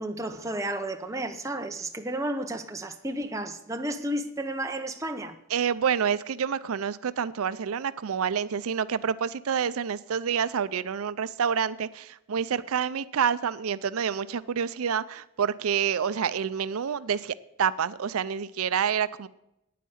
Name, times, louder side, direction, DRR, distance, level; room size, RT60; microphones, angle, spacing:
voice 1, 0.0-5.4, right 1 dB, 15° right, 0.8 m, -32 dB
voice 2, 5.5-19.3, right 7 dB, 85° right, 0.5 m, -28 dB
9.4 x 9.2 x 7.8 m
head